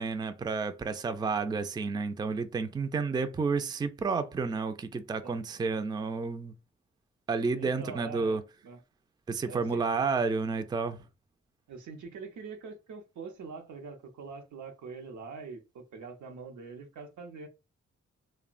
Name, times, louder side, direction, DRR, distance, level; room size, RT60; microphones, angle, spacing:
voice 1, 0.0-6.5 7.3-8.4 9.3-11.0, right 4 dB, 15° right, 0.3 m, -31 dB
voice 2, 7.5-8.8 9.5-9.8 11.7-17.5, right 5 dB, 85° right, 0.6 m, -44 dB
2.8 x 2.1 x 2.4 m
cardioid pair, 65°, 29 cm